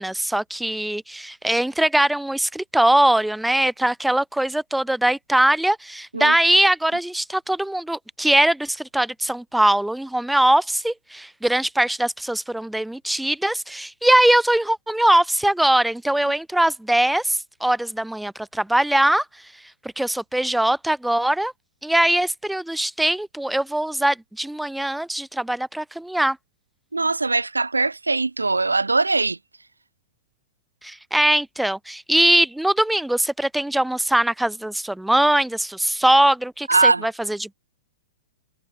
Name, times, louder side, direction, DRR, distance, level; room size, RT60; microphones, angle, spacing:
voice 1, 0.0-19.3 20.0-21.5 21.8-26.4 30.8-37.5, right 1 dB, 5° right, 0.4 m, -21 dB
voice 2, 26.9-29.4 36.7-37.1, right 3 dB, 80° right, 0.4 m, -21 dB
figure-of-eight pair, 105°, 0 cm